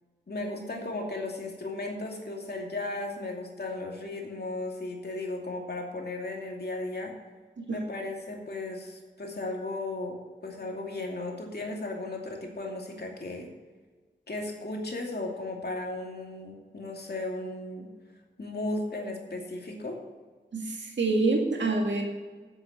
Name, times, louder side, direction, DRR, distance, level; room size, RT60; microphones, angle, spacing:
voice 1, 0.3-7.1 7.7-10.2 10.4-13.5 14.3-17.9 18.4-20.0, left 2 dB, 60° left, 0 dB, 2.5 m, -35 dB
voice 2, 20.5-22.0, right 3 dB, 85° right, 1 dB, 2.0 m, -27 dB
8.5 x 7.7 x 7.9 m, 1.4 s
cardioid pair, 45°, 19 cm